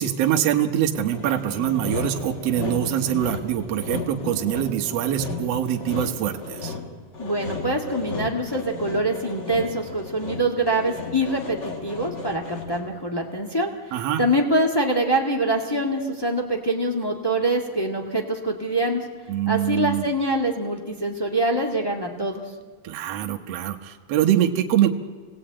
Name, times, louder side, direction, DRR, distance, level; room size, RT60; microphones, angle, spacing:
voice 1, 0.0-6.7 13.9-14.2 19.3-20.0 22.8-24.9, right 11 dB, 60° right, 5 dB, 1.9 m, -24 dB
Sawing, 0.9-13.0, left 3 dB, 35° left, 2.4 m, -34 dB
voice 2, 7.2-19.0 19.5-22.4, right 1 dB, 15° left, 0 dB, 0.9 m, -24 dB
27.5 x 18.5 x 8.8 m, 1.5 s
omnidirectional pair, 3.8 m